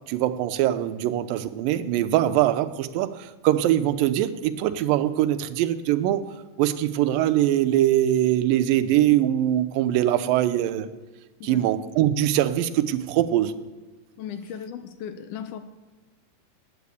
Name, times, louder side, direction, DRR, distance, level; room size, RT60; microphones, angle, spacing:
voice 1, 0.1-6.2 6.6-10.9 11.4-13.6, right 12 dB, 85° right, 10 dB, 2.4 m, -22 dB
voice 2, 14.2-15.6, left 8 dB, 80° left, 9 dB, 1.9 m, -36 dB
9.3 x 8.4 x 8.3 m, 1.2 s
omnidirectional pair, 3.9 m